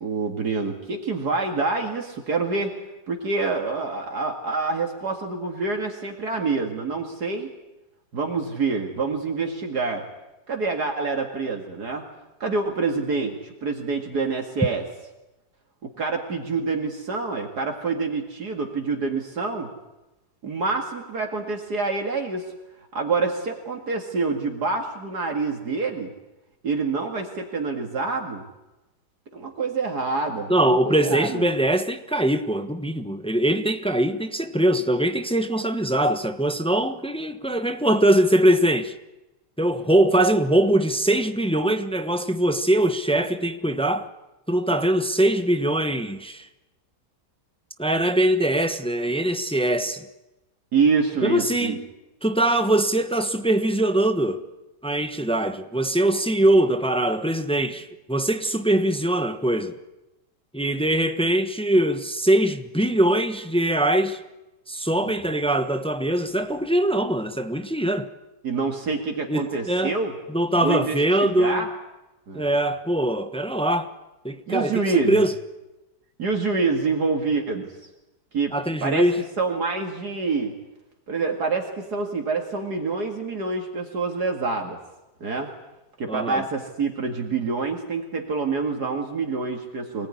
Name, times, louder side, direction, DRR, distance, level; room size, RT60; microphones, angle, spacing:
voice 1, 0.0-2.7 3.1-7.5 8.1-10.0 10.5-12.0 12.4-14.8 15.8-19.7 20.4-22.5 22.9-26.1 26.6-28.4 29.3-31.4 50.7-51.8 68.4-70.1 70.6-71.7 72.3-72.5 74.5-75.2 76.2-77.7 78.3-78.5 78.8-79.1 79.4-80.6 81.1-84.8 85.2-85.5 86.0-90.1, right 4 dB, 65° right, 2.6 m, -26 dB
voice 2, 30.5-38.9 39.6-44.1 44.5-46.5 47.8-50.0 51.2-51.8 52.2-54.4 54.8-59.7 60.5-64.2 64.7-68.1 69.3-69.9 70.3-71.6 72.3-73.9 74.2-75.3 78.5-79.2 86.1-86.4, right 1 dB, 5° left, 0.9 m, -22 dB
25.0 x 18.5 x 9.8 m
omnidirectional pair, 1.8 m